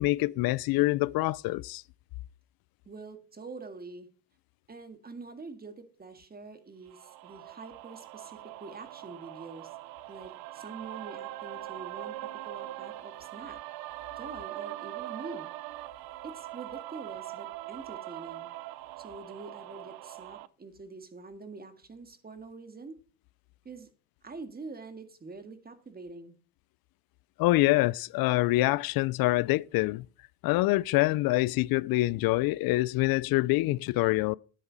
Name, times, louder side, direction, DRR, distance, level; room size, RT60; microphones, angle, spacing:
voice 1, 0.0-1.8 27.4-30.1 30.4-34.3, left 19 dB, 75° left, 0.5 m, -25 dB
voice 2, 2.9-4.1 4.7-9.7 10.1-13.6 14.2-15.5 16.2-18.5 19.0-23.0 23.6-23.9 24.2-26.4, right 3 dB, 25° right, 1.9 m, -45 dB
sound 1, 6.9-20.5, right 16 dB, 85° right, 0.7 m, -42 dB
9.9 x 8.7 x 4.0 m
cardioid pair, 100°, 35 cm